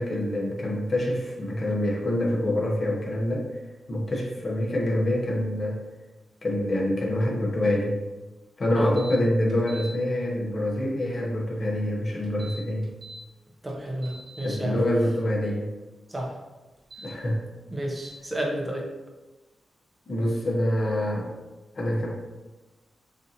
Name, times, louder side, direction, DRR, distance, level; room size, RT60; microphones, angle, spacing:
voice 1, 0.0-3.5 3.9-5.8 6.4-8.0 8.6-12.9 14.4-15.7 17.0-17.4 20.1-21.3 21.7-22.1, left 1 dB, 45° left, -2 dB, 1.0 m, -26 dB
sound 1, 9.0-9.1 9.5-9.9 12.2-13.2 13.7-14.4 16.8-17.1 18.0-18.1, right 1 dB, 50° right, 1.0 m, -43 dB
voice 2, 13.6-14.8 16.1-16.3 17.7-18.9, right 1 dB, 20° right, -1 dB, 0.8 m, -31 dB
6.7 x 2.7 x 2.8 m, 1.2 s
wide cardioid pair, 105°, 0 cm